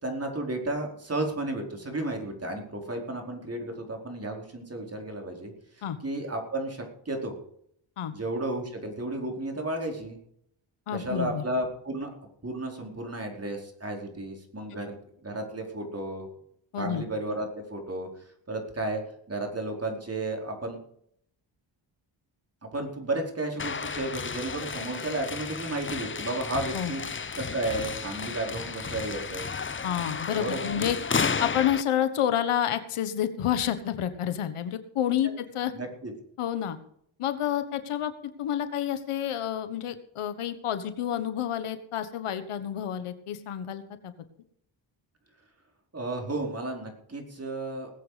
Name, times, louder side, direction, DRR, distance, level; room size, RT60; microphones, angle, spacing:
voice 1, 0.0-7.4 8.1-10.2 10.9-12.1 12.4-16.3 16.8-19.0 19.3-20.8 22.7-27.0 27.3-29.5 30.4-30.9 35.7-36.1 45.9-47.9, right 2 dB, 30° right, 2 dB, 4.6 m, -33 dB
voice 2, 10.9-11.4 16.7-17.0 26.7-26.9 29.8-31.0 31.4-35.7 36.4-36.8 37.2-38.1 38.4-44.1, left 10 dB, 90° left, 11 dB, 1.4 m, -29 dB
sound 1, 23.6-31.8, left 5 dB, 25° left, 0.7 m, -33 dB
19.5 x 8.1 x 5.1 m, 0.68 s
cardioid pair, 75°, 49 cm